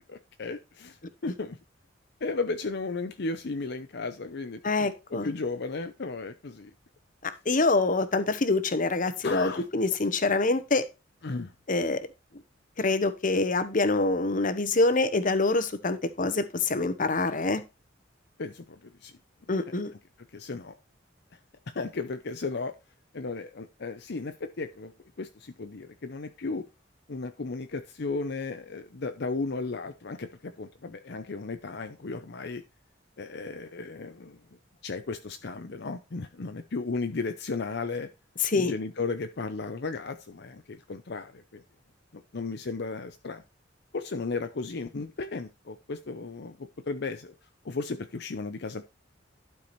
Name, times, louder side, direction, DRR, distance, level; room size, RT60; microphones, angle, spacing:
voice 1, 0.1-1.6 2.2-6.7 9.2-9.7 11.2-11.5 18.4-19.1 20.3-20.8 21.7-22.7 23.1-24.9 25.2-26.7 27.1-32.6 33.2-34.4 34.8-38.1 38.5-41.6 42.1-43.4 43.9-47.3 47.6-48.8, left 3 dB, 65° left, 7 dB, 0.7 m, -35 dB
voice 2, 4.6-5.3 7.2-10.9 11.7-12.1 12.8-17.6 19.5-19.9 38.4-38.7, left 3 dB, 45° left, 13 dB, 1.0 m, -25 dB
12.0 x 4.8 x 4.2 m, 0.26 s
head